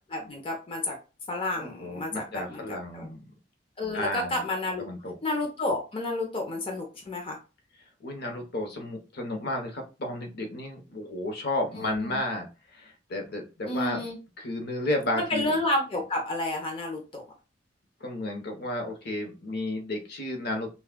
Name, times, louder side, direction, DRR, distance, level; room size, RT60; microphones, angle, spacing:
voice 1, 0.1-1.0 1.3-3.1 3.8-4.9 5.2-7.4 11.7-12.2 13.6-14.2 15.2-17.2, left 2 dB, 30° left, 1 dB, 0.7 m, -30 dB
voice 2, 1.6-3.3 3.9-4.4 4.8-5.2 8.0-14.1 14.4-15.5 18.0-20.7, left 1 dB, 55° left, 3 dB, 0.9 m, -32 dB
5.7 x 2.3 x 2.2 m, 0.31 s
head